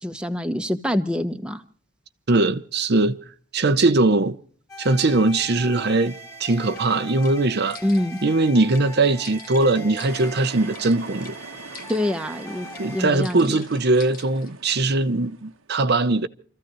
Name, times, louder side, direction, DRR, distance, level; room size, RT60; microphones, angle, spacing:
voice 1, 0.0-1.6 7.8-8.2 11.9-13.6, left 1 dB, 5° right, 1.0 m, -25 dB
voice 2, 2.3-3.2 3.5-4.4 4.8-6.1 6.4-7.8 8.2-11.3 12.8-16.3, right 2 dB, 50° right, 0.7 m, -20 dB
sound 1, 4.7-13.1, equal, 15° left, 2.1 m, -41 dB
sound 2, 6.8-6.9 7.2-7.4 7.7-8.3 8.7-8.9 9.2-10.9 11.2-11.4 11.7-12.3 12.7-12.9 13.2-14.5, left 7 dB, 40° left, 1.4 m, -44 dB
sound 3, 10.0-15.7, right 4 dB, 70° right, 1.1 m, -42 dB
29.0 x 14.5 x 3.0 m
head